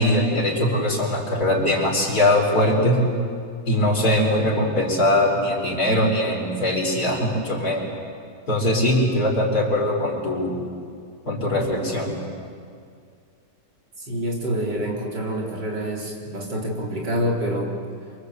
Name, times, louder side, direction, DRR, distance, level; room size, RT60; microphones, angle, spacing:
voice 1, 0.0-3.0 3.7-7.9 8.5-10.6 11.3-12.2, left 1 dB, 60° left, -1 dB, 4.9 m, -21 dB
voice 2, 14.1-17.7, equal, 85° right, -2 dB, 4.8 m, -27 dB
28.0 x 24.5 x 8.2 m, 2.2 s
omnidirectional pair, 1.8 m